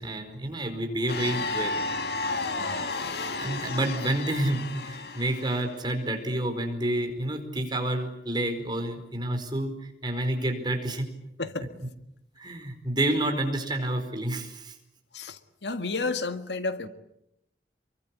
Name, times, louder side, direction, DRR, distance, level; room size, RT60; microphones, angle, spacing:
voice 1, 0.0-1.8 3.4-11.1 11.6-11.7 12.4-14.7, right 1 dB, 25° right, 5 dB, 4.7 m, -29 dB
sound 1, 1.1-5.7, left 3 dB, 65° left, 2.1 m, -32 dB
voice 2, 15.1-16.9, left 3 dB, 85° left, 9 dB, 1.8 m, -32 dB
28.5 x 23.5 x 8.5 m, 0.81 s
head